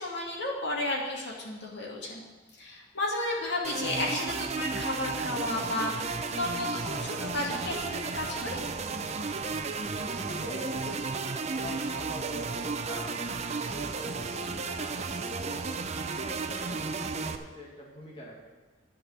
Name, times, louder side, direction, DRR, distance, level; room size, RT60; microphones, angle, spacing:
voice 1, 0.0-2.2 2.5-8.6, left 2 dB, 65° left, -3 dB, 2.5 m, -33 dB
sound 1, 3.6-17.4, right 4 dB, 35° right, 0.7 m, -33 dB
voice 2, 10.0-15.7 16.1-18.4, equal, 30° left, -3 dB, 1.9 m, -44 dB
11.5 x 5.4 x 8.7 m, 1.3 s
head